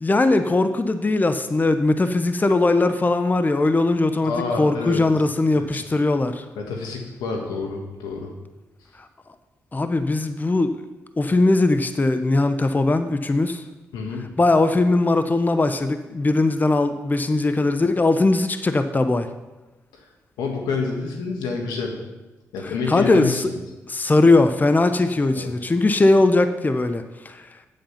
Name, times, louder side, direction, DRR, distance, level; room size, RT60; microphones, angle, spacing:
voice 1, 0.0-4.3 4.6-6.4 9.7-10.8 11.2-13.6 14.4-19.3 22.6-23.4 23.9-27.5, left 2 dB, 25° left, 9 dB, 0.8 m, -20 dB
voice 2, 4.2-5.0 5.5-5.8 6.5-8.3 13.9-14.3 20.4-21.9 22.5-23.6 25.3-25.5, left 4 dB, 90° left, 2 dB, 1.7 m, -28 dB
8.6 x 8.0 x 5.7 m, 1.1 s
supercardioid pair, 55°, 7 cm